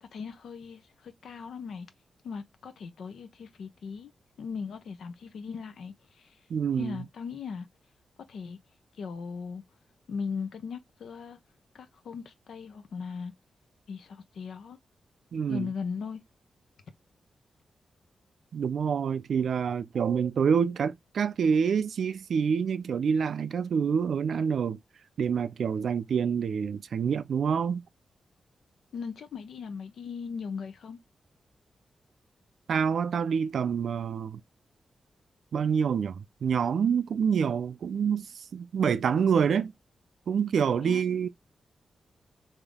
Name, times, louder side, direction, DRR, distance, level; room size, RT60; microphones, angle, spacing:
voice 1, 0.0-1.9 2.2-4.1 4.4-6.3 6.8-7.7 8.3-8.6 9.0-9.6 10.1-11.4 11.7-13.3 13.9-14.8 15.5-16.2 28.9-31.0 40.8-41.0, left 5 dB, 80° left, 0.6 m, -38 dB
voice 2, 6.5-7.1 15.3-15.7 18.5-24.8 25.2-27.8 32.7-34.4 35.5-39.7 40.3-41.3, right 7 dB, 75° right, 0.3 m, -27 dB
3.4 x 2.7 x 3.5 m
cardioid pair, 95°, 0 cm